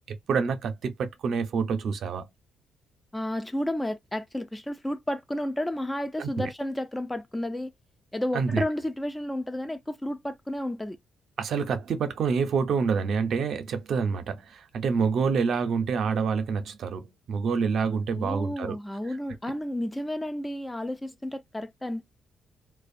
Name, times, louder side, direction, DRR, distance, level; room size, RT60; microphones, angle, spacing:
voice 1, 0.1-2.3 6.2-6.5 8.3-8.6 11.4-18.8, right 5 dB, 65° right, 0.5 m, -27 dB
voice 2, 3.1-7.7 8.1-11.0 18.1-22.0, left 1 dB, 10° left, 0.4 m, -31 dB
2.4 x 2.1 x 2.5 m
cardioid pair, 90°, 0 cm